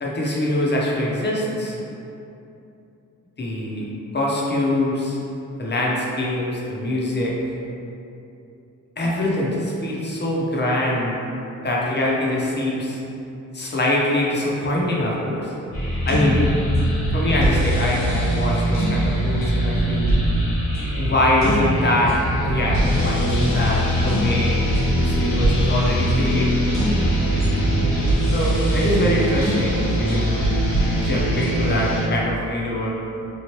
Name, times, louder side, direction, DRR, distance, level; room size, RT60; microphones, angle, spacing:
voice 1, 0.0-1.8 3.4-3.9 4.1-5.2 5.6-7.3 9.0-11.2 11.6-13.0 13.5-15.5 16.1-16.4 17.1-20.2 21.0-22.2 22.4-24.6 25.0-26.6 28.3-30.5 30.9-32.9, left 1 dB, 35° left, -4 dB, 0.7 m, -23 dB
sound 1, 15.7-32.0, right 1 dB, 80° left, 1.4 m, -21 dB
3.1 x 2.4 x 2.9 m, 2.7 s
cardioid pair, 60°, 32 cm